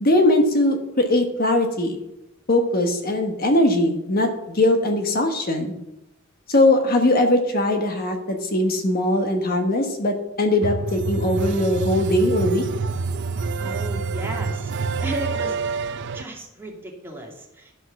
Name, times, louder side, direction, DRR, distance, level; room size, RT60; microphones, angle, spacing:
voice 1, 0.0-2.0 2.5-5.7 6.5-12.6, left 1 dB, 50° left, 4 dB, 1.3 m, -20 dB
sound 1, 10.6-16.2, right 4 dB, 60° right, 0.5 m, -27 dB
voice 2, 13.6-14.7 15.0-15.6 16.1-17.7, right 1 dB, 10° right, -1 dB, 2.2 m, -34 dB
12.0 x 6.4 x 6.0 m, 0.87 s
head